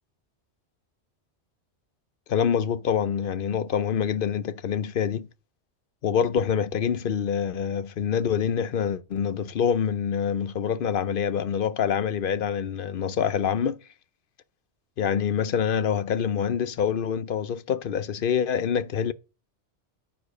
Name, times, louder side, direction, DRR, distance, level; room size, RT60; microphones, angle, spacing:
voice 1, 2.3-5.3 6.0-13.8 15.0-19.1, left 7 dB, 55° left, 0.7 m, -26 dB
9.6 x 4.8 x 6.5 m
omnidirectional pair, 1.2 m